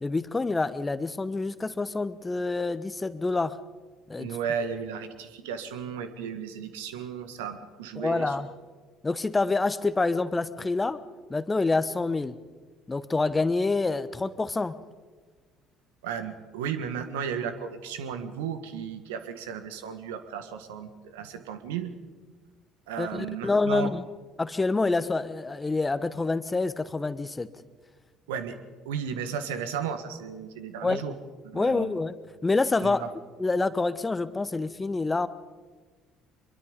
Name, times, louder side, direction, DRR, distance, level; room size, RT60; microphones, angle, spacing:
voice 1, 0.0-3.6 4.1-4.4 8.0-8.5 9.0-11.0 11.3-12.4 12.9-14.8 23.0-24.1 24.4-27.5 30.8-31.0 31.5-32.1 32.4-33.0 33.4-35.3, left 3 dB, 20° left, 14 dB, 1.1 m, -27 dB
voice 2, 4.2-8.3 16.0-22.0 22.9-23.9 28.3-28.6 28.8-31.1 31.4-32.0 32.8-33.1, right 7 dB, 75° right, 10 dB, 1.6 m, -34 dB
24.0 x 23.0 x 5.3 m, 1.4 s
hypercardioid pair, 55°, 0 cm